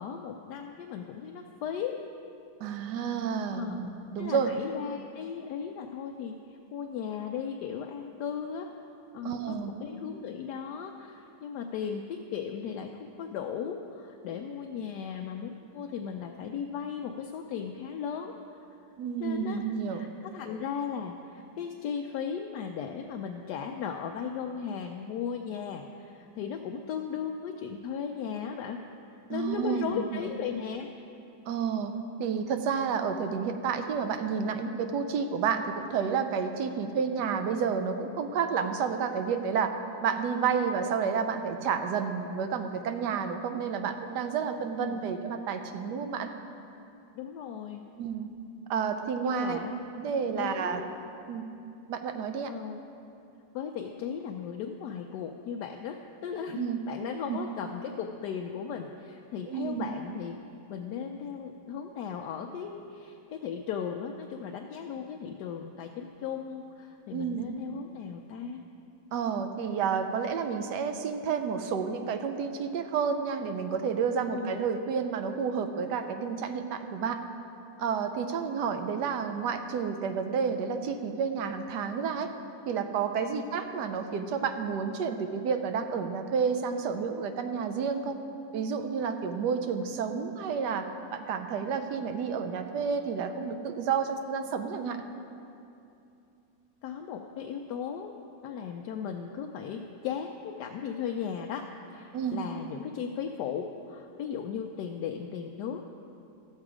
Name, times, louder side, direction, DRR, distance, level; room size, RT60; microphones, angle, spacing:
voice 1, 0.0-2.0 3.5-3.8 4.2-8.7 9.1-18.3 19.2-19.6 19.9-28.8 29.3-30.9 44.8-45.1 47.1-47.8 49.2-49.8 50.4-50.9 52.4-52.8 53.5-60.4 60.7-68.6 74.3-74.6 83.3-83.5 96.8-98.1 98.4-101.7 101.9-105.9, left 7 dB, 75° left, 3 dB, 1.1 m, -36 dB
voice 2, 2.6-4.5 9.2-9.7 19.0-20.1 29.3-30.2 31.5-31.9 32.2-39.7 40.0-46.3 48.0-48.3 48.7-49.6 50.0-50.8 51.3-51.4 51.9-52.5 56.5-56.8 57.3-57.4 59.5-59.9 67.1-67.5 69.1-77.2 77.8-82.3 82.7-88.2 88.5-95.0 102.1-102.4, right 6 dB, 75° right, 7 dB, 1.2 m, -30 dB
13.0 x 7.4 x 4.9 m, 2.7 s
omnidirectional pair, 1.9 m